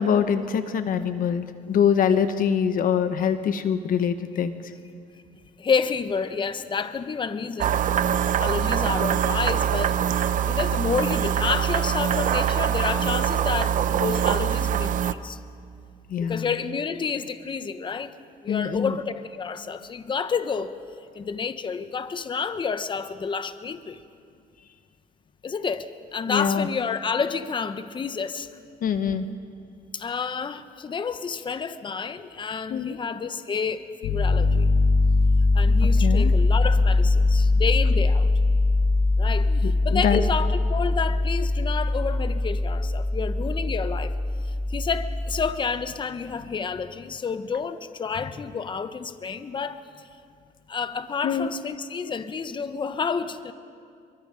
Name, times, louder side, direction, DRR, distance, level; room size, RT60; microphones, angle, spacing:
voice 1, 0.0-4.6 16.1-16.5 18.5-18.9 26.3-26.7 28.8-29.3 32.7-33.0 36.0-36.3 39.5-40.2 51.2-51.5, left 7 dB, 55° left, 10 dB, 1.1 m, -24 dB
voice 2, 5.6-7.8 8.4-10.0 10.5-15.4 16.2-18.1 18.4-20.7 21.1-24.0 25.4-28.5 29.9-34.7 35.5-38.3 39.2-44.1 44.7-49.8 50.7-53.5, left 5 dB, 30° left, 11 dB, 1.0 m, -29 dB
sound 1, 7.6-15.1, right 9 dB, 50° right, 0.7 m, -23 dB
Piano, 34.0-45.3, left 2 dB, 85° left, 4.9 m, -21 dB
27.5 x 23.5 x 5.2 m, 2.4 s
cardioid pair, 110°, 17 cm